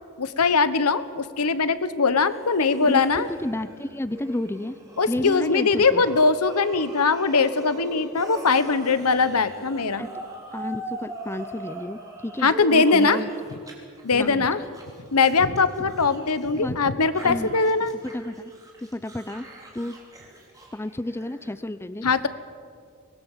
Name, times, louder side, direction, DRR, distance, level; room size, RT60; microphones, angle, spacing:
voice 1, 0.2-3.3 5.0-10.1 12.4-13.2 14.0-14.6 15.1-17.9 22.0-22.3, left 4 dB, 90° left, 13 dB, 1.2 m, -21 dB
sound 1, 2.2-13.7 14.0-16.6 17.0-21.5, right 2 dB, 15° right, 4.0 m, -41 dB
voice 2, 2.7-4.8 5.1-6.0 10.0-10.1 10.5-13.3 14.1-14.5 16.5-16.8 17.2-17.5 18.0-18.5 18.8-19.5 19.7-20.0 20.7-22.1, left 1 dB, 10° left, 13 dB, 0.5 m, -31 dB
24.5 x 20.0 x 7.4 m, 2.1 s
head